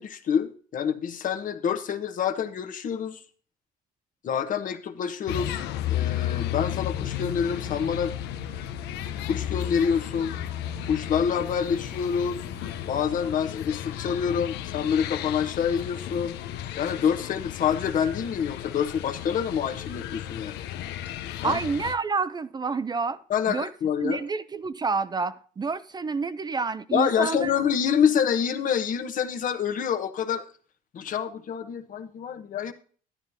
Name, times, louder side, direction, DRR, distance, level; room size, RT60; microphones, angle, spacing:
voice 1, 0.0-3.2 4.2-5.6 5.9-8.1 9.3-10.3 10.9-12.4 12.9-16.4 16.8-20.6 21.4-21.6 23.3-24.2 26.9-30.5 30.9-32.7, left 7 dB, 50° left, 1.1 m, -27 dB
sound 1, 5.3-21.9, left 12 dB, 85° left, 0.7 m, -34 dB
sound 2, 6.1-13.5, right 7 dB, 70° right, 1.2 m, -48 dB
voice 2, 21.4-23.2 23.5-23.7 24.0-27.5, right 4 dB, 25° right, 0.5 m, -28 dB
11.5 x 9.7 x 2.7 m
cardioid pair, 110°, 17 cm